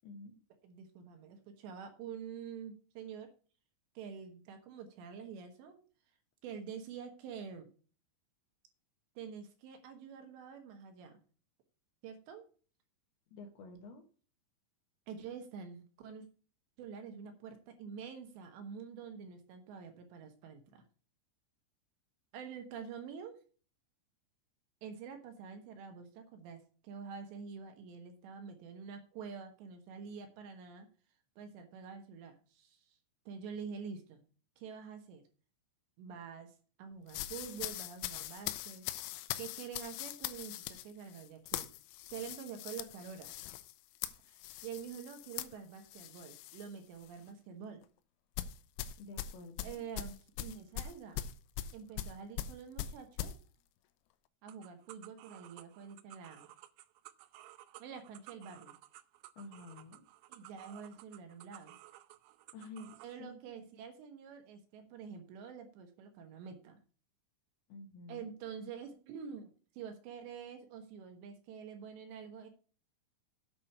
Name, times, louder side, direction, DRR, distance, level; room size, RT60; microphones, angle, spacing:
voice 1, 0.0-0.4 13.3-14.0 49.0-49.8 59.4-60.0 62.5-63.4 67.7-68.3, left 3 dB, 70° left, 4 dB, 2.6 m, -50 dB
voice 2, 0.6-3.3 4.0-5.8 6.4-7.7 9.2-11.2 12.0-12.4 15.1-16.3 16.8-20.8 22.3-23.4 24.8-30.9 31.4-33.0 33.3-34.2 34.6-35.2 36.0-38.9 39.4-41.7 42.1-43.3 44.3-47.8 49.6-51.2 51.7-53.3 54.4-56.5 57.8-58.8 60.3-61.8 63.0-66.8 68.1-72.5, right 6 dB, 70° right, 6 dB, 3.2 m, -47 dB
sound 1, 37.1-46.7 47.0-47.3 48.4-53.4, left 12 dB, 90° left, 3.3 m, -41 dB
sound 2, 54.5-63.1, right 15 dB, 85° right, 3.3 m, -55 dB
8.7 x 6.0 x 6.7 m, 0.39 s
omnidirectional pair, 5.7 m